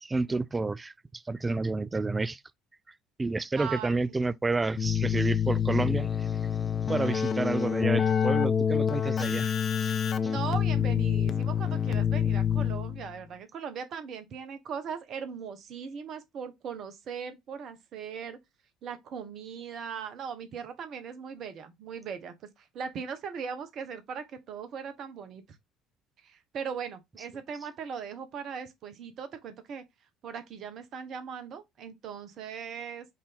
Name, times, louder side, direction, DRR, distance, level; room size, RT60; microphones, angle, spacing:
voice 1, 0.0-2.4 3.2-6.4 6.9-9.5 9.8-10.0 10.2-10.3, right 3 dB, 20° right, 0.4 m, -30 dB
voice 2, 3.5-3.9 7.0-7.2 10.2-18.4 18.8-25.4 26.2-29.8 30.2-33.1, right 6 dB, 55° right, 0.9 m, -39 dB
Keyboard (musical), 4.8-13.1, left 7 dB, 45° left, 0.6 m, -27 dB
5.6 x 2.7 x 3.4 m
hypercardioid pair, 60°, 0 cm